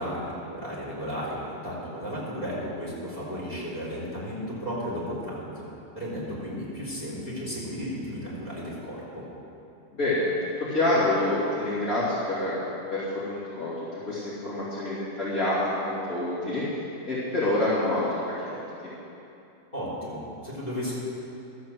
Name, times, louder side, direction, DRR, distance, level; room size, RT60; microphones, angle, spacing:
voice 1, 0.0-5.6 5.9-9.2 19.7-20.9, equal, 20° left, -6 dB, 4.1 m, -34 dB
voice 2, 9.9-16.6 17.0-18.5, left 1 dB, 50° left, -11 dB, 3.3 m, -27 dB
13.0 x 8.3 x 7.7 m, 2.8 s
omnidirectional pair, 1.9 m